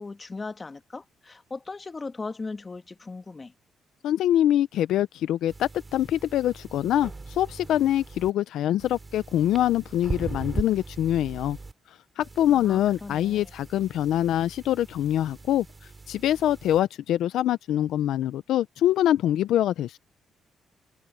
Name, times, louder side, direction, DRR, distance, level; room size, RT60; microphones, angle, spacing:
voice 1, 0.0-3.5 12.5-13.5, left 3 dB, 25° left, 1.6 m, -38 dB
voice 2, 4.0-11.6 12.2-15.6 16.1-20.0, left 12 dB, 80° left, 0.6 m, -24 dB
sound 1, 5.5-8.3 8.8-11.7 12.2-16.8, right 3 dB, 25° right, 3.1 m, -39 dB
cardioid pair, 90°, 0 cm